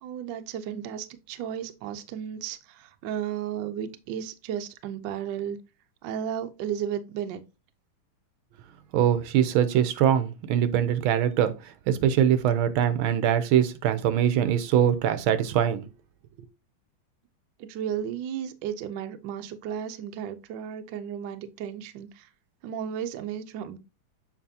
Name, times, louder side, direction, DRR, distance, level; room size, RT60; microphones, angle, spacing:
voice 1, 0.0-5.6 6.0-7.4 17.6-22.3 22.6-23.8, right 9 dB, 70° right, 1.2 m, -34 dB
voice 2, 8.9-15.8, right 10 dB, 90° right, 1.5 m, -23 dB
7.3 x 5.2 x 2.7 m
omnidirectional pair, 2.2 m